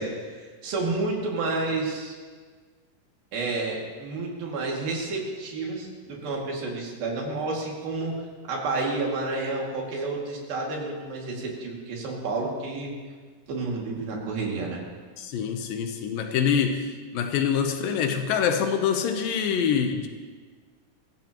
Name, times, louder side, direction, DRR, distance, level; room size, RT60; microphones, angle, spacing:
voice 1, 0.0-2.1 3.3-8.2 8.5-12.9 13.5-14.8, right 3 dB, 80° right, -2 dB, 4.1 m, -30 dB
voice 2, 15.2-20.1, left 7 dB, 80° left, 5 dB, 2.5 m, -25 dB
21.5 x 15.5 x 3.0 m, 1.5 s
omnidirectional pair, 4.1 m